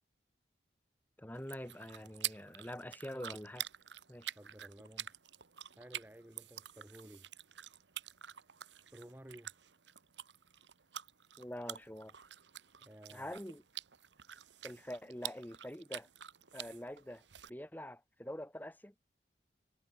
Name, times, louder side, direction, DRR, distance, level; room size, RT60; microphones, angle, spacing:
voice 1, 1.2-3.7 4.1-4.3 11.4-12.1 13.1-13.6 14.6-16.1 16.5-17.2 17.5-18.9, left 1 dB, 10° left, 1.5 m, -45 dB
sound 1, 1.3-17.5, right 12 dB, 85° right, 1.5 m, -48 dB
voice 2, 4.4-5.2 5.8-7.3 8.9-9.5 12.8-13.3, right 1 dB, 10° right, 0.8 m, -54 dB
head